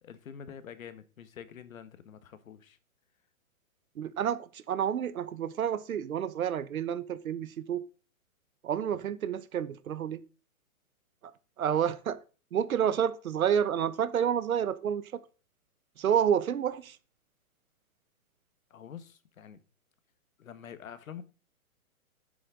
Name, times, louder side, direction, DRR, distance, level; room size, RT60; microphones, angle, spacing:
voice 1, 0.0-2.8 18.7-19.6 20.4-21.2, left 8 dB, 70° left, 1.4 m, -46 dB
voice 2, 4.0-7.8 8.6-10.2 11.6-12.2 12.5-15.2 16.0-17.0, right 8 dB, 70° right, 1.1 m, -29 dB
10.0 x 7.8 x 3.8 m
hypercardioid pair, 160°, 43 cm